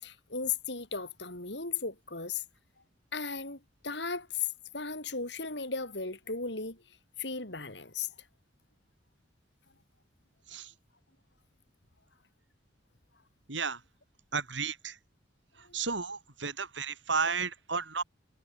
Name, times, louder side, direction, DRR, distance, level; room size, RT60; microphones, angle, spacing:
voice 1, 0.0-2.4 3.1-6.8 7.2-8.1, left 5 dB, 65° left, 5.2 m, -36 dB
voice 2, 13.5-13.8 14.3-15.0 15.7-18.0, right 5 dB, 75° right, 5.1 m, -33 dB
head